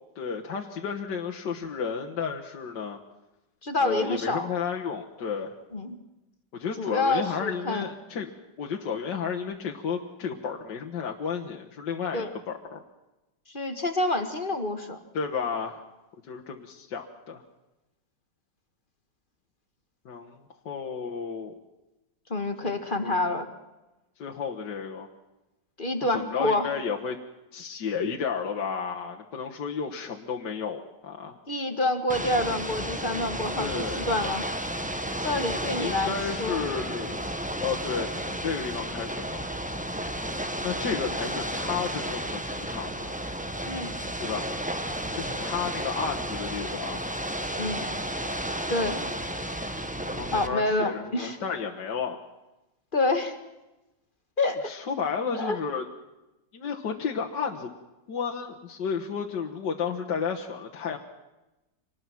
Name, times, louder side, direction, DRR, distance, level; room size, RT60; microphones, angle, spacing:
voice 1, 0.2-3.0 3.8-5.5 6.5-8.3 8.6-12.8 15.1-15.8 16.3-17.4 20.1-21.5 22.6-22.7 23.0-23.3 24.2-25.1 26.1-27.2 27.5-31.4 33.6-34.1 35.8-37.3 37.6-39.5 40.6-43.2 44.2-44.5 45.1-47.0 49.9-52.2 54.6-55.8 56.5-57.7 58.1-61.0, left 6 dB, 75° left, 0 dB, 2.1 m, -32 dB
voice 2, 3.6-4.5 5.7-6.0 6.8-7.9 12.1-12.3 13.5-15.0 22.3-23.5 25.8-26.7 31.5-34.4 35.2-36.1 36.4-36.7 43.6-43.9 47.6-47.8 48.7-49.0 50.3-51.4 52.9-53.4 54.4-54.7 55.3-55.6, left 2 dB, 30° left, 7 dB, 1.8 m, -27 dB
Ocean / Boat Water vehicle, 32.1-50.5, right 1 dB, 5° right, 1.0 m, -32 dB
26.0 x 20.0 x 6.1 m, 1.0 s
omnidirectional pair, 1.9 m